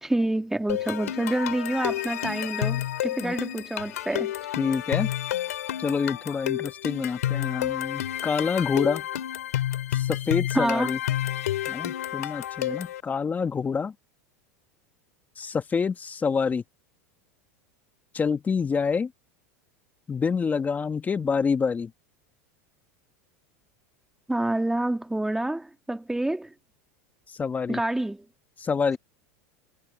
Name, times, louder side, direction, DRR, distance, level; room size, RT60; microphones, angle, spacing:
voice 1, 0.0-4.3 10.6-10.9 24.3-26.5 27.7-28.2, right 1 dB, 5° right, 1.6 m, -27 dB
sound 1, 0.7-13.0, left 12 dB, 85° left, 2.7 m, -30 dB
voice 2, 4.6-5.1 5.8-9.0 9.9-11.0 11.7-13.9 15.4-16.6 18.1-19.1 20.1-21.9 27.3-27.8 28.6-29.0, left 5 dB, 20° left, 1.6 m, -27 dB
hypercardioid pair, 110°, 8 cm